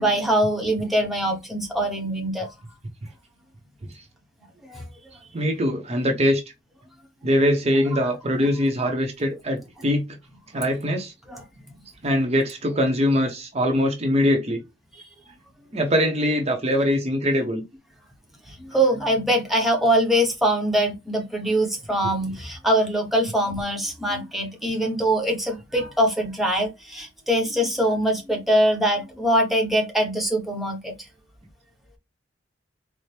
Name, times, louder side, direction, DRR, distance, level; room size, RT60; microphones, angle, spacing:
voice 1, 0.0-2.5 4.7-4.8 11.3-11.4 18.5-30.9, right 1 dB, ahead, 0.8 m, -23 dB
voice 2, 5.3-6.4 7.2-10.2 10.5-11.1 12.0-14.6 15.7-17.6, equal, 35° right, 0.7 m, -22 dB
4.2 x 2.0 x 3.2 m
head